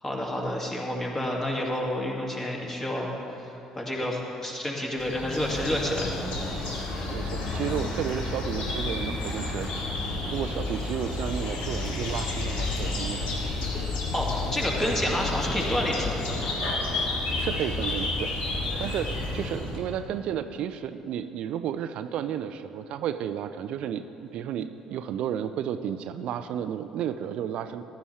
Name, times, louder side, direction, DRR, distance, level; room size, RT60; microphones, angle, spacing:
voice 1, 0.0-3.1 3.4-3.5 3.8-6.5 14.1-16.6, left 1 dB, 20° left, -1 dB, 2.1 m, -29 dB
sound 1, 5.0-19.8, left 2 dB, 60° left, 1.7 m, -31 dB
voice 2, 7.0-9.9 10.2-13.5 17.4-18.4 18.8-27.8, right 9 dB, 55° right, 10 dB, 0.4 m, -32 dB
15.0 x 11.5 x 3.2 m, 3.0 s
figure-of-eight pair, 50°, 2 cm